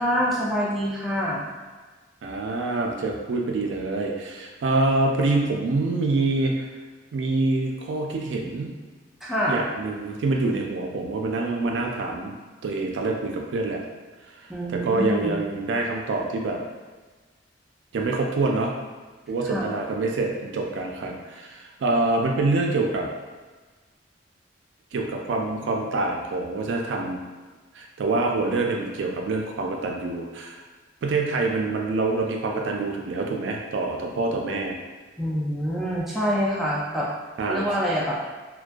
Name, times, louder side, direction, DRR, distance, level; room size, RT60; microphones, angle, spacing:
voice 1, 0.0-1.5 9.2-9.6 14.5-15.4 19.5-19.7 35.2-37.1 37.4-38.2, equal, ahead, -6 dB, 0.3 m, -26 dB
voice 2, 2.2-6.7 7.1-8.7 9.5-12.3 12.6-13.8 14.3-14.4 14.7-16.6 17.9-18.7 19.3-23.1 24.9-27.2 27.7-30.6 31.0-34.8 37.4-37.6, right 3 dB, 75° right, 1 dB, 0.4 m, -26 dB
2.2 x 2.2 x 2.5 m, 1.4 s
head